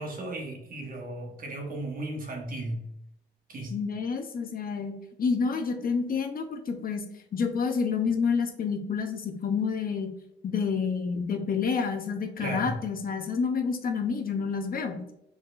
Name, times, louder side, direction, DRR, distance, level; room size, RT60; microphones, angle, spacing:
voice 1, 0.0-2.9 3.5-3.7 12.4-12.7, right 2 dB, 45° right, 1 dB, 1.2 m, -35 dB
voice 2, 3.7-4.9 5.2-7.0 7.3-10.1 10.4-15.0, left 5 dB, 50° left, 4 dB, 0.7 m, -28 dB
4.7 x 4.3 x 2.5 m, 0.82 s
cardioid pair, 120°, 19 cm